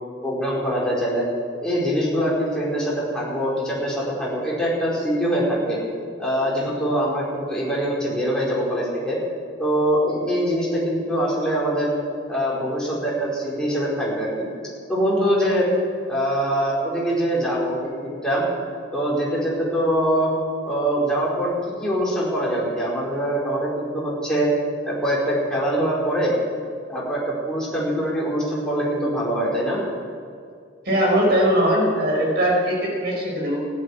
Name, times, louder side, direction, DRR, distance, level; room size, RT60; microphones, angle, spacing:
voice 1, 0.2-1.3 1.6-5.8 6.2-9.2 9.6-11.9 12.3-14.5 14.9-15.7 16.1-17.7 18.0-18.4 18.9-20.3 20.6-24.5 24.9-26.3 26.9-29.8, equal, 5° left, -6 dB, 4.5 m, -23 dB
voice 2, 30.8-33.6, equal, 50° right, -1 dB, 4.9 m, -20 dB
14.5 x 9.9 x 9.1 m, 2.2 s
head